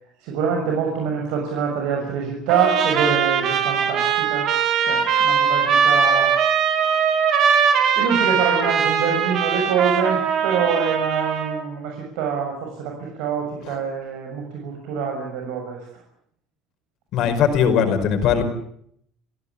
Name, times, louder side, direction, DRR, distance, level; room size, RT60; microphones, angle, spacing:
voice 1, 0.2-4.5 4.8-6.4 6.9-7.0 8.0-16.0, right 6 dB, 75° right, 1 dB, 6.4 m, -25 dB
Trumpet, 2.5-11.6, right 7 dB, 45° right, 4.2 m, -20 dB
voice 2, 17.1-18.4, left 7 dB, 50° left, 6 dB, 5.1 m, -19 dB
28.0 x 17.0 x 8.5 m, 0.69 s
cardioid pair, 165°, 0 cm